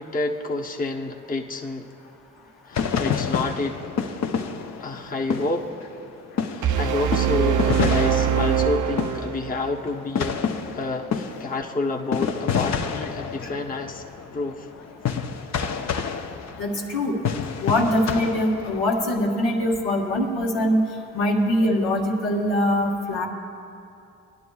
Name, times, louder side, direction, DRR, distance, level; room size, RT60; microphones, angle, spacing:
voice 1, 0.0-1.9 2.6-4.1 4.8-5.9 6.5-10.4 10.7-14.0 14.3-14.7, left 3 dB, 25° left, 0 dB, 0.9 m, -29 dB
sound 1, 2.7-6.1 6.4-19.0, left 6 dB, 50° left, 0.7 m, -29 dB
sound 2, 6.6-9.6, right 8 dB, 60° right, 0.6 m, -23 dB
voice 2, 16.6-17.2 17.6-20.8 21.1-23.3, left 1 dB, 90° left, -2 dB, 1.4 m, -22 dB
19.5 x 11.0 x 2.3 m, 2.6 s
supercardioid pair, 50°, 35 cm